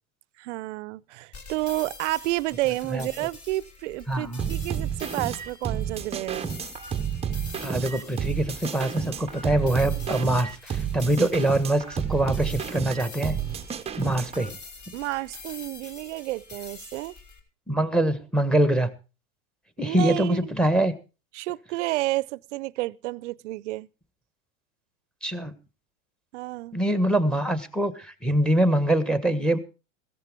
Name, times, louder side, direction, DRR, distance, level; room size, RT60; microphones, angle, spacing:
voice 1, 0.4-6.5 14.9-17.1 19.8-20.5 21.3-23.9 26.3-26.8, right 19 dB, 60° right, 0.7 m, -30 dB
sound 1, 1.3-17.4, left 4 dB, 35° left, 3.6 m, -46 dB
voice 2, 4.1-4.5 7.6-13.4 14.0-14.5 17.7-18.9 19.8-20.9 25.2-25.5 26.7-29.6, right 1 dB, ahead, 1.4 m, -24 dB
sound 2, 4.4-14.5, right 8 dB, 15° right, 0.8 m, -31 dB
16.5 x 14.0 x 3.6 m
hypercardioid pair, 110°, 40 cm